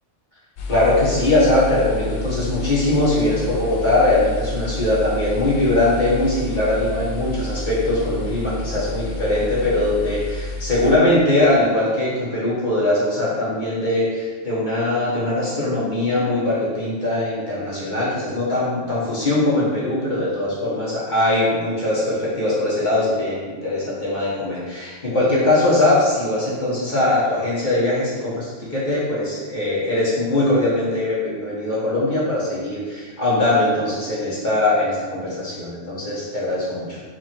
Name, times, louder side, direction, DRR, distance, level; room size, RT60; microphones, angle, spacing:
sound 1, 0.6-11.0, left 2 dB, 65° left, 0.5 m, -30 dB
voice 1, 0.7-37.0, left 2 dB, 40° left, -8 dB, 1.3 m, -21 dB
3.6 x 3.1 x 4.4 m, 1.4 s
omnidirectional pair, 1.3 m